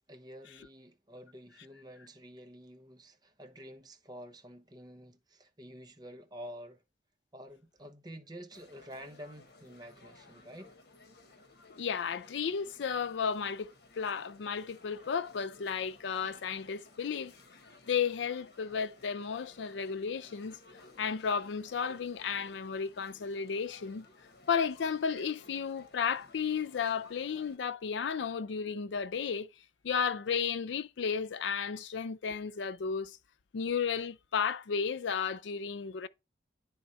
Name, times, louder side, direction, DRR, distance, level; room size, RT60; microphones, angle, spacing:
voice 1, 0.1-6.8 7.3-10.7, equal, 25° right, 1.0 m, -49 dB
sound 1, 8.5-27.6, left 2 dB, 60° left, 1.2 m, -58 dB
voice 2, 11.8-17.3 17.9-20.6 21.0-24.1 24.5-29.5 29.8-33.2 33.5-36.1, left 6 dB, 85° left, 0.5 m, -33 dB
9.7 x 3.5 x 4.2 m
head